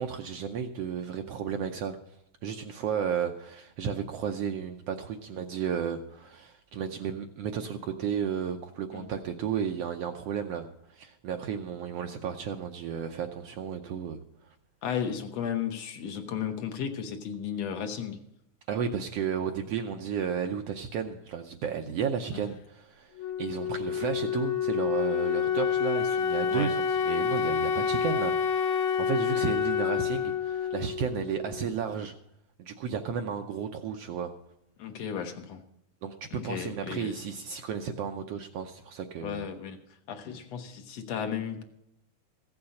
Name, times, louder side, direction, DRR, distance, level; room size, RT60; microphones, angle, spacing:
voice 1, 0.0-1.9 2.4-14.5 18.7-32.1 32.6-34.3 36.0-39.5, right 7 dB, 70° right, 5 dB, 1.5 m, -33 dB
voice 2, 14.8-18.2 22.3-22.4 26.5-26.7 34.8-35.6 36.3-37.2 39.2-39.8 40.1-41.6, left 8 dB, 65° left, 5 dB, 2.0 m, -34 dB
Wind instrument woodwind instrument, 23.2-31.9, left 7 dB, 85° left, 2.3 m, -28 dB
15.5 x 7.2 x 6.3 m, 0.80 s
omnidirectional pair, 3.4 m